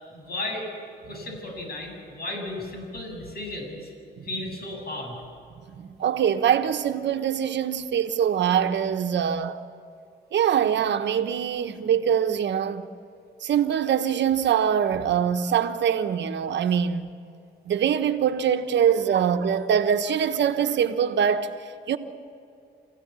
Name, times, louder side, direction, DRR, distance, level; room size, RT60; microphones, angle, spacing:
voice 1, 0.1-0.7 1.1-3.9 4.2-5.2, left 1 dB, 50° left, 7.7 m, -34 dB
voice 2, 5.7-9.6 10.3-12.9 13.4-17.1 17.6-22.0, right 8 dB, 65° right, 1.4 m, -23 dB
27.0 x 16.5 x 8.4 m
cardioid pair, 90°, 20 cm